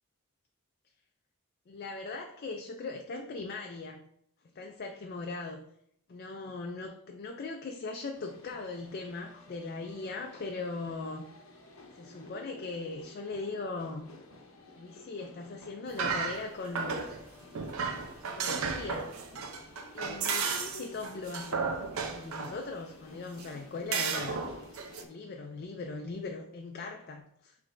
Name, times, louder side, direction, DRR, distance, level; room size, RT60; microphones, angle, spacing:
voice 1, 1.7-4.1 4.5-5.6 6.1-11.3 11.9-14.1 14.7-17.0 18.3-19.1 19.9-21.8 22.1-24.4 25.1-27.6, left 3 dB, 45° left, 3 dB, 0.3 m, -39 dB
sound 1, 8.1-25.1, left 3 dB, 80° left, 0.8 m, -52 dB
sound 2, 15.9-17.2 17.5-22.6 23.4-23.5 23.9-25.0, right 5 dB, 90° right, 0.6 m, -33 dB
5.9 x 3.2 x 2.5 m, 0.71 s
head